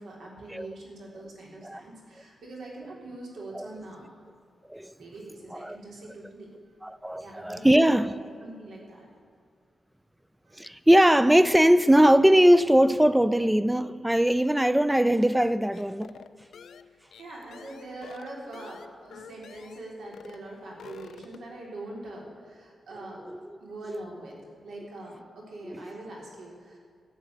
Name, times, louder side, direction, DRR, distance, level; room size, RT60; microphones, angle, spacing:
voice 1, 0.0-4.0 5.0-6.7 7.2-9.1 10.5-10.6 16.9-23.2 23.6-24.4 24.6-26.8, right 2 dB, 90° right, 3.7 m, -43 dB
voice 2, 6.8-8.1 10.6-16.1 23.3-23.6 25.6-26.0, equal, 5° right, 0.4 m, -21 dB
sound 1, 15.7-19.9 20.1-20.4 20.7-21.5, left 7 dB, 85° left, 0.5 m, -48 dB
13.5 x 7.8 x 9.6 m
wide cardioid pair, 150°, 0 cm